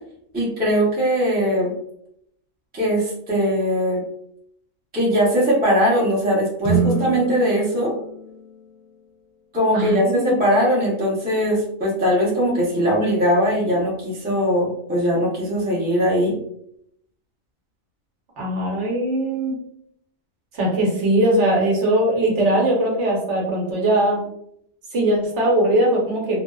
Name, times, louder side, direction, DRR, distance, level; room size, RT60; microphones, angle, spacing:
voice 1, 0.3-1.7 2.7-4.1 4.9-7.9 9.5-16.4, equal, 10° right, -6 dB, 0.4 m, -20 dB
sound 1, 6.6-9.0, right 4 dB, 65° left, 0.3 m, -26 dB
voice 2, 9.7-10.4 18.4-19.6 20.5-24.2 24.9-26.4, right 1 dB, 60° right, -2 dB, 1.0 m, -20 dB
2.8 x 2.0 x 2.2 m, 0.73 s
omnidirectional pair, 1.4 m